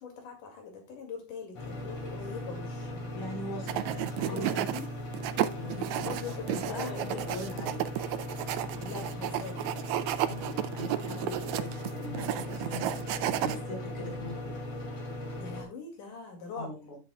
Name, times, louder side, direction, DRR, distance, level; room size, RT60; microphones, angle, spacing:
voice 1, 0.0-3.1 4.3-4.6 6.0-7.0 8.8-9.7 15.4-16.7, left 5 dB, 75° left, 3 dB, 3.7 m, -42 dB
sound 1, 1.6-15.6, left 1 dB, 50° left, 3.3 m, -39 dB
voice 2, 3.1-4.8 5.5-7.9 10.3-14.6 16.6-17.0, left 1 dB, 15° left, 1 dB, 3.8 m, -41 dB
sound 2, 3.7-4.8 5.1-13.6, right 12 dB, 80° right, 1.7 m, -32 dB
11.0 x 8.3 x 2.3 m, 0.28 s
omnidirectional pair, 3.7 m